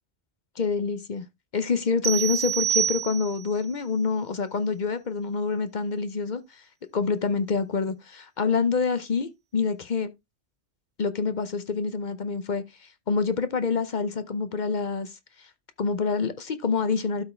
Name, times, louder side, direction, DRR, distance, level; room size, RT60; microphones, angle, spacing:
voice 1, 0.6-1.2 1.5-6.6 6.9-10.1 11.0-15.5 15.8-17.2, left 5 dB, 50° left, 0.8 m, -27 dB
sound 1, 2.0-3.6, right 9 dB, 80° right, 1.0 m, -27 dB
12.5 x 4.6 x 3.2 m
omnidirectional pair, 1.1 m